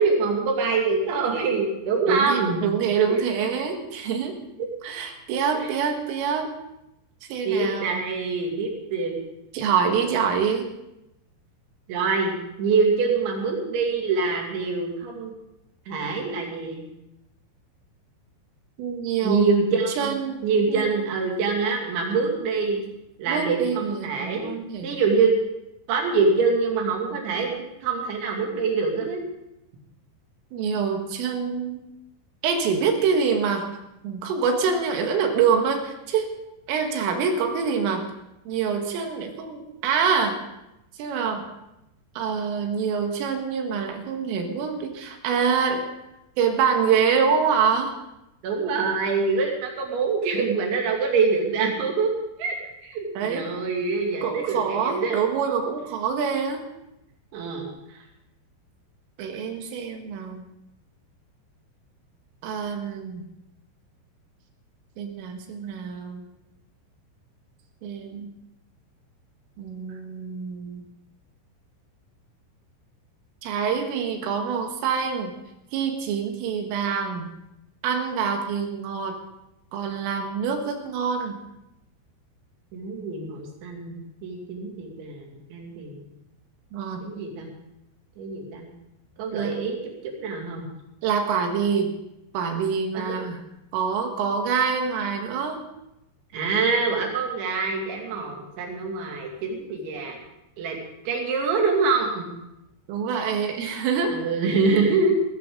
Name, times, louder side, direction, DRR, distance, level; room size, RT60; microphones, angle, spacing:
voice 1, 0.0-2.6 5.5-5.7 7.5-9.2 11.9-15.3 15.9-16.9 19.2-20.1 20.4-22.8 23.2-24.5 24.8-25.4 25.9-29.2 48.4-52.6 52.8-55.2 57.3-58.0 82.7-86.0 87.0-87.5 88.2-88.7 89.2-89.8 90.0-90.7 92.9-93.2 96.3-100.2 100.6-100.8 101.1-102.3 104.1-105.2, right 4 dB, 70° right, 0 dB, 4.8 m, -25 dB
voice 2, 2.1-4.3 4.8-6.5 7.3-8.0 9.5-10.7 18.8-19.5 20.0-20.9 23.3-25.0 30.5-31.9 32.4-33.7 34.0-36.3 36.7-38.0 38.5-40.4 41.0-41.5 42.2-45.9 46.4-47.9 53.2-53.5 54.2-56.7 59.2-60.4 62.4-63.3 65.0-66.2 67.8-68.3 69.6-70.8 73.4-75.3 75.7-77.4 77.8-79.1 79.7-81.4 86.7-87.1 89.3-89.6 91.0-91.9 92.3-93.4 93.7-95.6 102.9-104.2, right 6 dB, 85° right, 4 dB, 4.3 m, -25 dB
18.0 x 15.5 x 3.9 m, 0.89 s
omnidirectional pair, 5.6 m